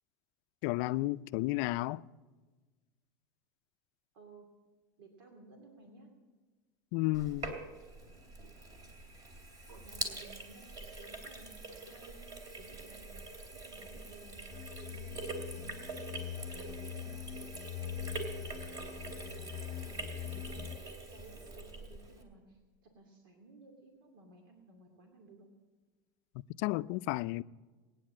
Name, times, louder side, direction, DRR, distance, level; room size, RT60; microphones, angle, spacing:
voice 1, 0.6-2.0 6.9-7.6 26.6-27.4, left 19 dB, 55° left, 0.4 m, -32 dB
voice 2, 5.0-6.1 9.7-14.5 14.8-16.1 16.5-17.4 17.8-25.5, right 3 dB, 80° right, 2.4 m, -57 dB
Sink (filling or washing), 7.1-22.2, right 2 dB, 35° right, 2.8 m, -44 dB
sound 1, 14.5-20.8, left 11 dB, 30° left, 0.8 m, -43 dB
19.5 x 9.8 x 7.4 m
supercardioid pair, 135°, 11 cm